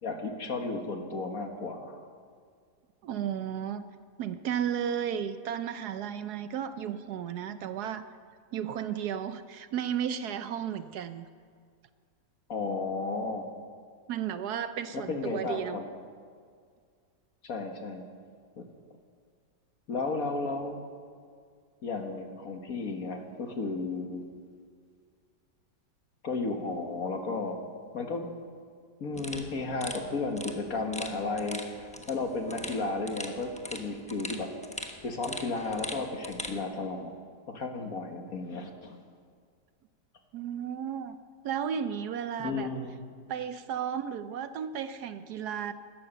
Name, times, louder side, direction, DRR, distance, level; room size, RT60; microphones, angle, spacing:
voice 1, 0.0-2.0 12.5-13.5 14.9-15.9 17.4-18.1 18.6-18.7 19.9-20.9 21.8-24.3 26.2-28.3 29.0-34.5 35.0-37.1 37.5-39.0 42.4-43.0, left 3 dB, 55° left, 4 dB, 1.8 m, -33 dB
voice 2, 3.0-3.8 4.2-8.0 8.5-11.2 14.1-15.8 40.3-41.2 41.4-42.7 43.3-45.7, right 8 dB, 70° right, 11 dB, 1.1 m, -33 dB
sound 1, 29.1-36.6, left 1 dB, 5° left, 0.7 m, -42 dB
17.0 x 12.0 x 6.8 m, 2.1 s
omnidirectional pair, 1.9 m